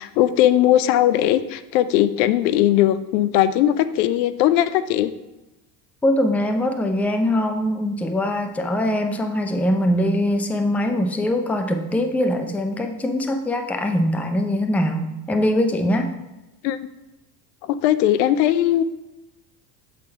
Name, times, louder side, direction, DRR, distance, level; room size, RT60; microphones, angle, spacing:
voice 1, 0.0-5.1 16.6-16.8 17.7-18.8, left 12 dB, 75° left, 13 dB, 0.6 m, -19 dB
voice 2, 6.0-16.1, left 1 dB, 5° left, 6 dB, 0.4 m, -22 dB
7.4 x 3.8 x 4.4 m, 1.0 s
hypercardioid pair, 85°, 50 cm